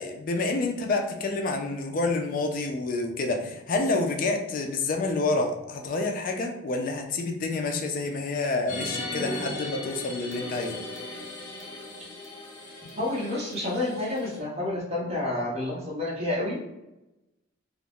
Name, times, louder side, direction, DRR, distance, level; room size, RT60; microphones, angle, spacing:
voice 1, 0.0-10.8, left 3 dB, 40° left, 3 dB, 0.3 m, -28 dB
sound 1, 8.7-14.4, left 2 dB, 70° left, 0.7 m, -37 dB
voice 2, 13.0-16.6, left 2 dB, 30° right, -5 dB, 0.7 m, -29 dB
2.4 x 2.0 x 3.4 m, 0.92 s
head